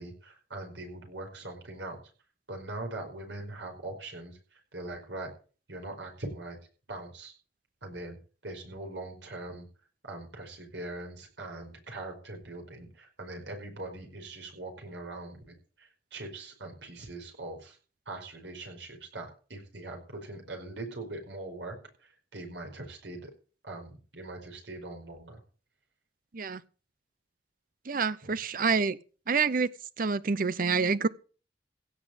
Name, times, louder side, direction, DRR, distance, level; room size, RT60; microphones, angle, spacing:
voice 1, 0.0-2.0 2.5-5.3 5.7-6.6 6.9-7.3 7.8-8.2 8.4-9.6 10.0-17.8 18.0-23.3 23.6-25.4 28.2-28.3, right 2 dB, 90° right, 5.0 m, -41 dB
voice 2, 27.9-29.0 29.3-29.7 30.0-31.1, right 5 dB, 50° right, 0.7 m, -27 dB
16.5 x 6.0 x 7.8 m
head